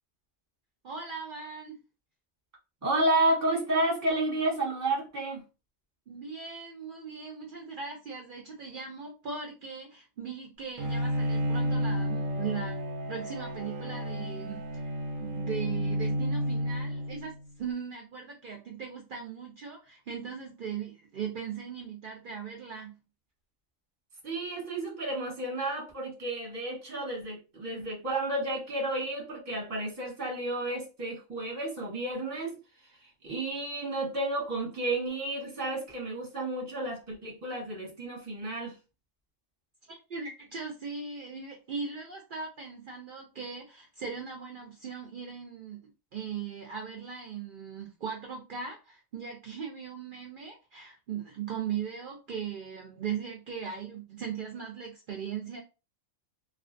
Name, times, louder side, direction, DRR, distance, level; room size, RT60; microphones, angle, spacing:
voice 1, 0.8-1.8 6.1-12.7 13.1-14.9 15.2-22.9 39.9-45.8 46.1-55.6, right 6 dB, 60° right, 0.5 m, -39 dB
voice 2, 2.8-5.4 24.2-32.6 33.0-38.8, right 2 dB, 15° right, 0.8 m, -31 dB
Bowed string instrument, 10.8-17.5, equal, 90° right, 1.0 m, -31 dB
2.4 x 2.3 x 2.5 m
omnidirectional pair, 1.3 m